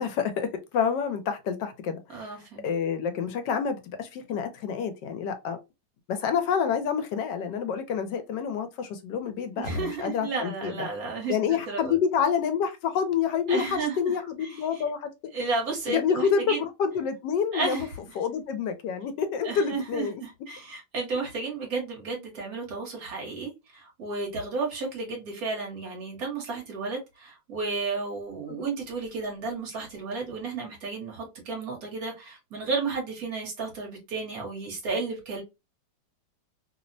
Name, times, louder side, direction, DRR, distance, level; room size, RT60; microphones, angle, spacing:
voice 1, 0.0-2.3 2.6-5.6 6.1-10.9 11.3-15.1 15.9-17.9 18.2-20.2 28.6-28.7, left 7 dB, 75° left, 1.2 m, -28 dB
voice 2, 2.1-2.7 9.5-12.0 13.5-14.2 14.4-14.8 15.3-16.6 17.5-17.9 19.4-35.4, right 4 dB, 60° right, 1.3 m, -33 dB
3.2 x 2.0 x 2.5 m
omnidirectional pair, 1.9 m